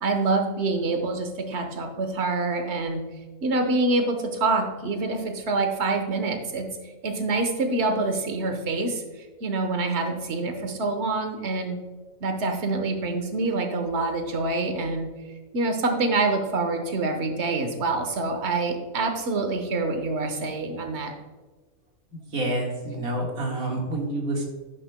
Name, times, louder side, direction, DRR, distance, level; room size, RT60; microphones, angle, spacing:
voice 1, 0.0-3.0 3.4-6.7 7.0-9.0 9.4-11.8 12.2-15.1 15.5-21.1, right 3 dB, 55° right, 6 dB, 1.3 m, -26 dB
voice 2, 22.3-24.4, right 1 dB, 85° right, 0 dB, 2.2 m, -28 dB
11.0 x 10.0 x 2.2 m, 1.3 s
omnidirectional pair, 1.5 m